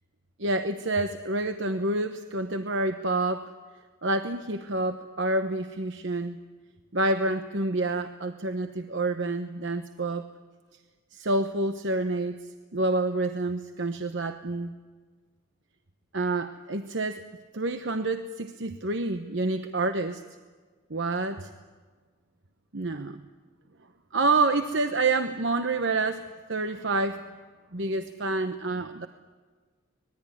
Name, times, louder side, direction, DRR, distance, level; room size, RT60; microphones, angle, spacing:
voice 1, 0.4-3.5 4.0-6.4 6.9-10.2 11.1-14.7 16.1-17.2 17.5-20.1 20.9-21.5 22.7-23.2 24.1-27.2 27.7-29.1, right 2 dB, 65° right, 7 dB, 1.1 m, -28 dB
25.0 x 20.0 x 9.8 m, 1.5 s
head